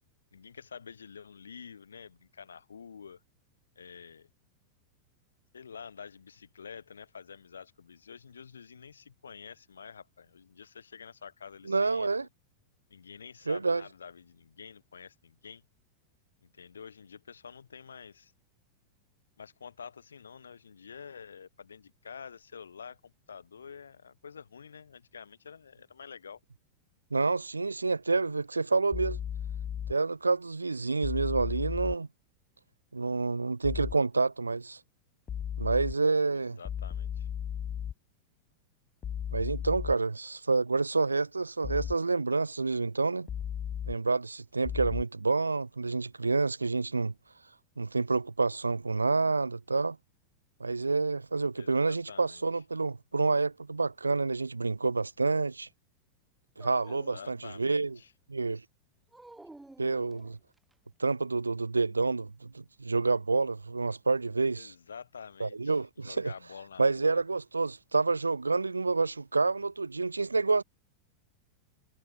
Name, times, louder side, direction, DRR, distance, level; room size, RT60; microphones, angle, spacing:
voice 1, 0.3-3.2 3.7-4.3 5.5-12.1 12.9-15.6 16.4-18.3 19.4-26.4 36.3-37.3 51.5-52.4 56.9-58.1 64.6-67.2, left 6 dB, 70° left, 3.2 m, -48 dB
voice 2, 11.7-12.3 13.5-13.8 27.1-29.2 29.9-32.1 32.9-34.8 35.6-36.6 39.3-43.3 43.9-47.1 47.8-50.0 50.6-55.7 56.6-58.0 58.3-58.6 59.8-60.4 61.0-64.7 65.4-66.3 66.8-70.6, right 3 dB, 80° right, 0.3 m, -28 dB
sound 1, 28.9-29.9 31.0-31.9 33.6-33.9 35.3-35.9 36.6-37.9 39.0-39.9 41.6-41.9 43.3-43.9 44.6-45.0, left 9 dB, 25° left, 0.4 m, -35 dB
Dog, 56.6-58.0 59.1-60.7, right 2 dB, 5° right, 2.4 m, -52 dB
figure-of-eight pair, 90°, 0 cm